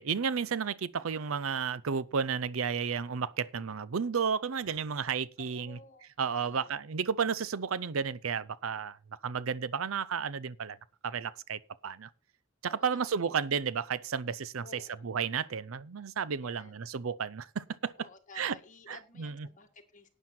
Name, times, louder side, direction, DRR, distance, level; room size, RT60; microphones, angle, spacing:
voice 1, 0.0-5.8 6.2-9.0 9.2-10.8 11.0-12.1 12.6-18.1 18.4-18.6 18.9-19.5, right 6 dB, 85° right, 0.6 m, -32 dB
voice 2, 5.4-6.1 6.4-6.8 12.7-13.5 14.6-15.1 16.4-16.8 18.0-20.1, left 3 dB, 40° left, 2.1 m, -54 dB
11.5 x 9.2 x 4.4 m
head